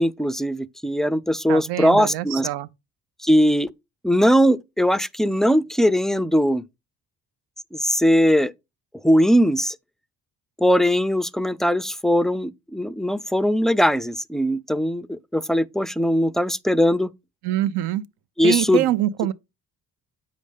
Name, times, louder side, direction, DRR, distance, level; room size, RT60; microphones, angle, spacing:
voice 1, 0.0-2.5 3.2-3.7 4.0-6.6 7.7-8.5 9.0-9.8 10.6-17.1 18.4-18.8, equal, ahead, 0.3 m, -20 dB
voice 2, 1.5-2.7 17.4-18.0 18.4-19.3, right 14 dB, 70° right, 0.7 m, -24 dB
7.5 x 5.1 x 3.5 m
supercardioid pair, 55°, 42 cm